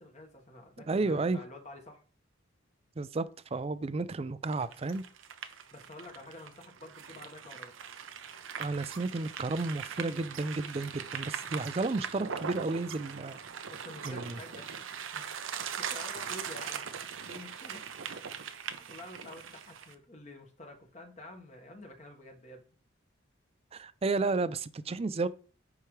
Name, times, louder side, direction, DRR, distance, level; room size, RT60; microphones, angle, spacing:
voice 1, 0.0-2.0 5.7-7.7 13.7-14.7 15.1-15.3 15.8-17.8 18.7-22.6, left 1 dB, 35° left, 1.4 m, -49 dB
voice 2, 0.9-1.4 3.0-3.3 3.5-5.0 8.6-13.4 14.0-14.4 23.7-25.3, right 3 dB, 30° right, 0.4 m, -32 dB
sound 1, 4.5-19.9, right 7 dB, 85° right, 0.8 m, -41 dB
10.0 x 4.8 x 3.2 m
head